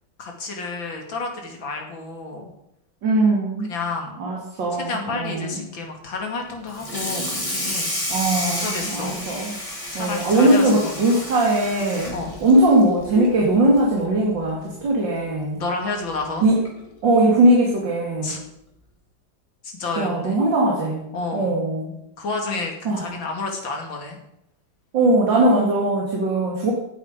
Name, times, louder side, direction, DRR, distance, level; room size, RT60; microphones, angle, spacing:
voice 1, 0.2-2.5 3.7-4.1 4.7-7.9 8.6-9.2 9.9-11.2 12.1-12.3 15.6-16.5 18.2-18.4 19.6-20.4 21.1-21.5 22.2-24.2, left 3 dB, 85° left, 1 dB, 3.2 m, -30 dB
voice 2, 3.0-3.7 4.2-5.6 8.1-9.6 9.9-12.1 12.4-15.6 16.4-16.6 17.0-18.3 20.0-21.1 21.3-21.9 22.9-23.1 24.9-26.7, right 1 dB, 75° right, -2 dB, 3.1 m, -20 dB
Water tap faucet / Sink (filling or washing), 6.7-13.4 13.8-14.0 14.4-14.5 14.9-15.0 16.1-16.2 16.6-16.9, left 1 dB, 15° left, 2.8 m, -30 dB
16.5 x 9.1 x 5.1 m, 0.81 s
omnidirectional pair, 2.1 m